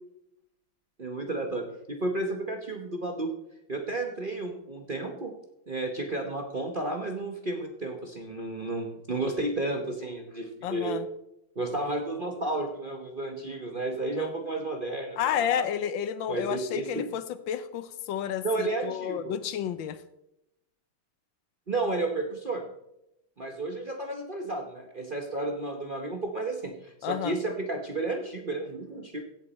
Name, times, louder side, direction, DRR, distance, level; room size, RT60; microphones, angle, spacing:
voice 1, 1.0-3.3 3.7-5.3 5.7-11.0 11.6-15.7 16.3-17.1 18.4-19.3 21.7-22.6 23.4-29.2, right 2 dB, 35° right, 2 dB, 0.8 m, -32 dB
voice 2, 10.6-11.1 14.2-14.3 15.2-20.0 27.0-27.3, left 9 dB, 75° left, 13 dB, 1.4 m, -31 dB
16.0 x 7.9 x 4.2 m, 0.83 s
omnidirectional pair, 2.2 m